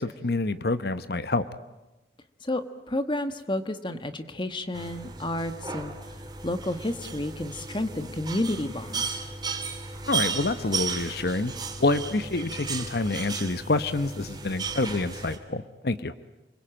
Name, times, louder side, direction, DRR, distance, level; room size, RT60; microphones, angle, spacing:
voice 1, 0.0-1.5 10.1-11.5 11.8-16.1, left 2 dB, 60° left, 12 dB, 1.0 m, -27 dB
voice 2, 2.4-5.9 6.4-9.2, left 1 dB, 25° left, 10 dB, 1.3 m, -31 dB
sound 1, 4.7-15.4, right 5 dB, 25° right, 2.8 m, -35 dB
29.0 x 22.0 x 8.9 m, 1.0 s
head